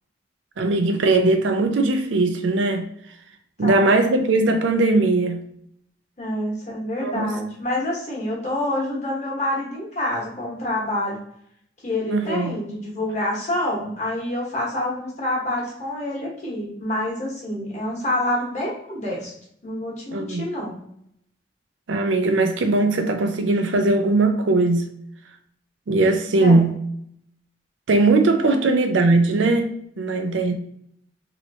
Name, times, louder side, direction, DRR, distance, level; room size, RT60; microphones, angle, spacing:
voice 1, 0.6-2.9 3.6-5.4 7.0-7.4 12.1-12.5 20.1-20.5 21.9-24.9 25.9-26.8 27.9-30.5, right 2 dB, 85° right, 0.5 m, -19 dB
voice 2, 3.6-3.9 6.2-11.2 11.8-19.3 19.6-20.8 26.4-26.6 28.4-28.7, left 1 dB, 40° left, 1.2 m, -27 dB
3.1 x 2.8 x 2.7 m
head